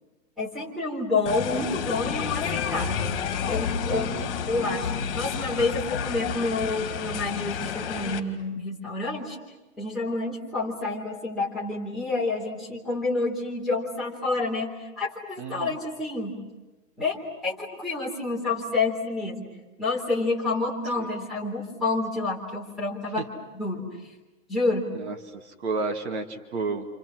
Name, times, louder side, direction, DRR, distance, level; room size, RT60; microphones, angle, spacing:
voice 1, 0.4-3.1 3.5-4.2 4.5-9.4 9.8-16.4 17.0-19.5 19.8-23.3 23.5-23.9 24.5-24.9, left 3 dB, ahead, -3 dB, 3.7 m, -28 dB
sound 1, 1.3-8.2, left 7 dB, 45° left, 2.8 m, -30 dB
voice 2, 3.9-4.3 15.4-15.8 21.0-21.1 24.9-26.9, right 3 dB, 55° right, 3 dB, 2.5 m, -32 dB
29.5 x 28.0 x 6.3 m, 1.1 s
supercardioid pair, 175°, 41 cm